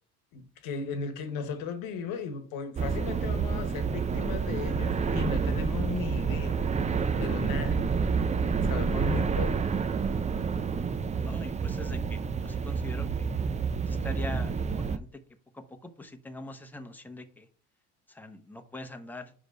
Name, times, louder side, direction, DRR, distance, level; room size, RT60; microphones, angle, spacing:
voice 1, 0.3-6.6 7.2-7.8 8.6-9.7, left 5 dB, 70° left, 1.3 m, -36 dB
sound 1, 2.8-15.0, right 5 dB, 20° right, 0.5 m, -29 dB
voice 2, 11.2-13.3 13.9-15.2 15.5-17.5 18.1-19.3, left 2 dB, 5° left, 0.9 m, -43 dB
5.1 x 4.9 x 5.2 m
supercardioid pair, 80°, 37 cm